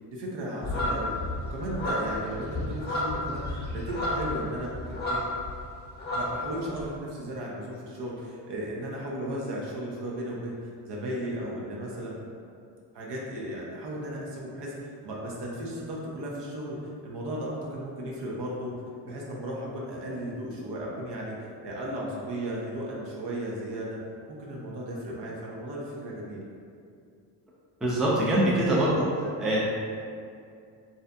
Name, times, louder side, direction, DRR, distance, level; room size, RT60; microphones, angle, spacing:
voice 1, 0.1-1.1 1.5-5.2 6.1-10.6 10.9-12.2 12.9-16.8 17.0-18.7 19.0-21.3 21.6-24.0 24.3-26.4, right 1 dB, 55° right, -4 dB, 0.7 m, -35 dB
sound 1, 0.6-5.6 5.8-6.8, left 1 dB, 20° left, 0.9 m, -31 dB
voice 2, 27.8-29.6, right 1 dB, ahead, -7 dB, 0.5 m, -24 dB
2.6 x 2.4 x 2.2 m, 2.4 s
supercardioid pair, 65°, 49 cm